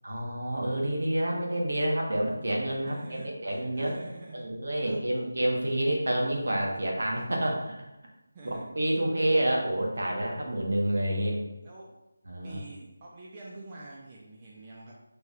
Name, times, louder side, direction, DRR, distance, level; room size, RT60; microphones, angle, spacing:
voice 1, 0.0-3.9 4.3-7.7 8.7-11.4 12.3-12.6, right 1 dB, 65° right, -1 dB, 1.2 m, -28 dB
voice 2, 2.8-4.5 4.8-5.4 8.3-8.7 11.6-12.0 12.4-14.9, right 2 dB, 25° right, -4 dB, 0.5 m, -46 dB
6.0 x 3.4 x 2.4 m, 0.96 s
figure-of-eight pair, 165°, 0 cm